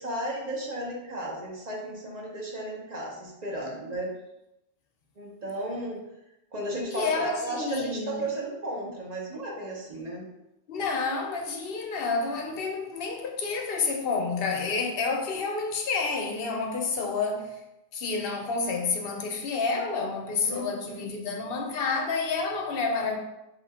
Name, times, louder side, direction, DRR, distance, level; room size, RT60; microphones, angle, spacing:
voice 1, 0.0-4.1 5.2-6.0 6.5-10.3 20.5-21.0, right 1 dB, 35° right, -2 dB, 0.9 m, -34 dB
voice 2, 6.9-8.3 10.7-17.5 17.9-23.2, left 4 dB, 60° left, 2 dB, 0.8 m, -29 dB
4.2 x 2.4 x 4.2 m, 0.89 s
omnidirectional pair, 1.3 m